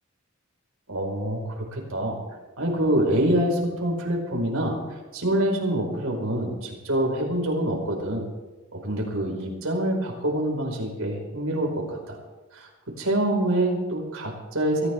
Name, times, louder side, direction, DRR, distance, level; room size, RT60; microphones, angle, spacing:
voice 1, 0.9-2.2 2.6-4.8 5.1-8.2 8.7-12.2 12.5-12.7 13.0-14.9, right 1 dB, 85° right, 0 dB, 4.9 m, -26 dB
24.0 x 15.0 x 3.6 m, 1.2 s
head